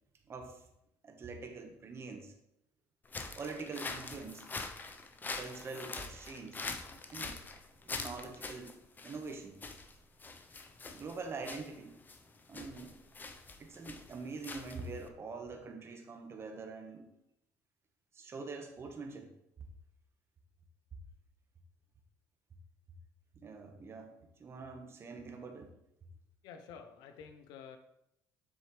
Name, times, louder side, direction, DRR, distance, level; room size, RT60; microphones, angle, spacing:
voice 1, 0.3-0.6 1.0-2.3 3.4-4.4 5.4-6.6 7.1-7.4 8.0-8.7 9.0-9.6 10.9-12.0 12.5-13.0 13.6-17.1 18.1-19.3 23.4-24.1 24.4-25.7, right 4 dB, 35° right, 4 dB, 1.4 m, -44 dB
sound 1, 3.1-15.1, left 3 dB, 25° left, 0.8 m, -44 dB
voice 2, 26.4-27.8, left 7 dB, 80° left, 8 dB, 0.8 m, -50 dB
7.6 x 6.4 x 3.3 m, 0.81 s
cardioid pair, 100°, 7 cm